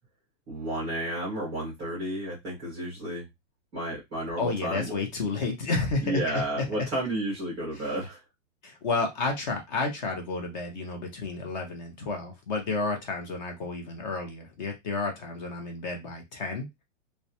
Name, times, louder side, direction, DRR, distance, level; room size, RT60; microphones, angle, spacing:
voice 1, 0.5-3.3 3.7-5.0 6.0-8.2, right 1 dB, 10° right, -6 dB, 0.4 m, -32 dB
voice 2, 4.4-6.2 6.5-6.9 8.6-16.7, left 3 dB, 35° left, 2 dB, 0.6 m, -31 dB
2.4 x 2.1 x 2.7 m, 0.20 s
supercardioid pair, 170°, 38 cm